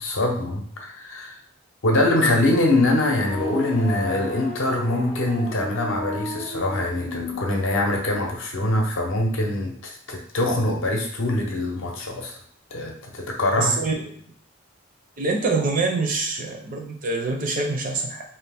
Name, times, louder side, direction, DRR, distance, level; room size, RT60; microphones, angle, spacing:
voice 1, 0.0-1.4 1.8-12.3 12.7-13.7, left 1 dB, 65° left, 1 dB, 0.7 m, -23 dB
sound 1, 3.1-7.5, left 2 dB, 30° left, 0.4 m, -34 dB
voice 2, 13.6-13.9 15.2-18.2, right 3 dB, 40° right, 1 dB, 0.5 m, -25 dB
2.7 x 2.4 x 3.4 m, 0.62 s
head